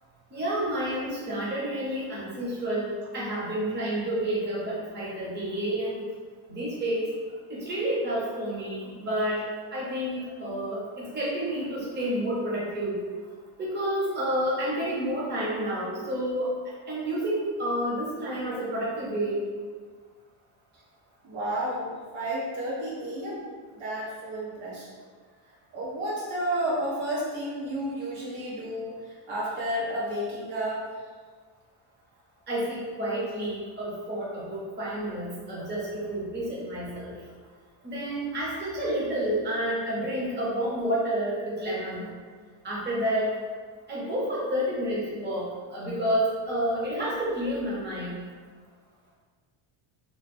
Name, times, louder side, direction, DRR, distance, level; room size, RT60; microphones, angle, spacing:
voice 1, 0.3-6.0 6.5-7.1 7.5-9.4 9.7-13.0 13.6-16.5 16.9-19.4 32.5-37.1 37.8-42.1 42.6-43.3 43.9-48.2, right 1 dB, 20° right, -6 dB, 0.9 m, -29 dB
voice 2, 21.2-23.4 23.7-24.9 25.7-30.8, right 1 dB, 75° right, -7 dB, 1.5 m, -31 dB
3.1 x 2.2 x 4.2 m, 1.5 s
cardioid pair, 140°, 48 cm